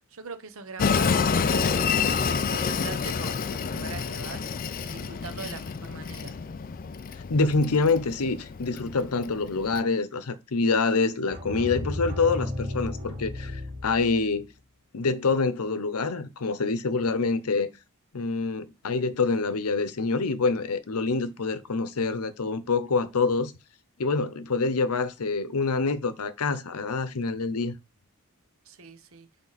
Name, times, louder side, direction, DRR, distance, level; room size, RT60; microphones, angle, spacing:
voice 1, 0.1-1.9 2.3-6.3 21.2-21.3 28.6-29.3, right 4 dB, 65° right, 0.9 m, -42 dB
Train, 0.8-9.8, left 5 dB, 40° left, 0.4 m, -28 dB
voice 2, 7.3-14.5 14.9-17.7 18.1-23.5 24.0-27.8, left 4 dB, 80° left, 0.7 m, -26 dB
sound 1, 11.3-14.4, left 1 dB, 35° right, 3.9 m, -34 dB
8.7 x 3.4 x 4.1 m
head